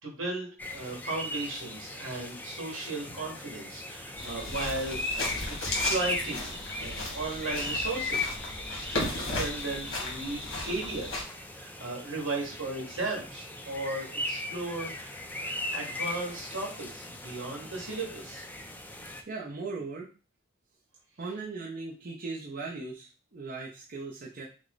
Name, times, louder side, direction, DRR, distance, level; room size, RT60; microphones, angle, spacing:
voice 1, 0.0-8.3 8.7-11.3 11.6-18.4, right 2 dB, 70° right, -1 dB, 2.2 m, -36 dB
sound 1, 0.6-19.2, left 2 dB, 10° left, 0.5 m, -38 dB
sound 2, 4.2-11.2, left 2 dB, 90° left, 1.9 m, -35 dB
voice 2, 19.3-20.1 21.2-24.4, right 3 dB, 45° right, -3 dB, 0.7 m, -38 dB
6.3 x 2.2 x 3.9 m, 0.35 s
head